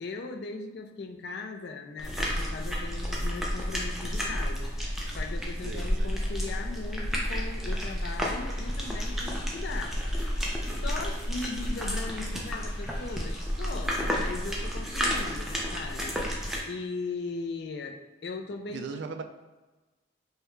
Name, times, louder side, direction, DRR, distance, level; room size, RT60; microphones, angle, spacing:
voice 1, 0.0-10.4 10.8-19.1, left 3 dB, 60° left, 4 dB, 0.4 m, -39 dB
sound 1, 2.0-16.6, equal, ahead, 0.4 m, -31 dB
voice 2, 5.6-6.1 18.7-19.2, right 5 dB, 65° right, 7 dB, 0.3 m, -38 dB
sound 2, 6.6-13.4, left 1 dB, 25° left, 0.8 m, -53 dB
4.6 x 2.2 x 3.2 m, 1.2 s
head